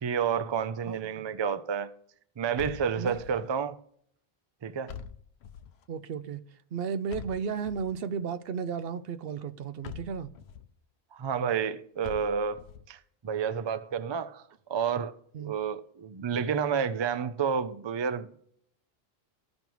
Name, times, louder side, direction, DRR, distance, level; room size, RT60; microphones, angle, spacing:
voice 1, 0.0-1.9 2.4-3.8 4.6-5.0 11.1-12.6 12.9-14.4 14.7-18.4, right 7 dB, 45° right, 0.3 m, -30 dB
voice 2, 0.9-1.2 3.0-3.2 5.9-6.4 6.7-10.3 15.3-15.5, right 6 dB, 70° right, 0.8 m, -34 dB
sound 1, 2.6-3.5 4.9-5.8 7.1-8.1 9.8-10.7 12.0-12.9, left 8 dB, 85° left, 0.8 m, -44 dB
15.0 x 5.3 x 3.0 m
omnidirectional pair, 1.1 m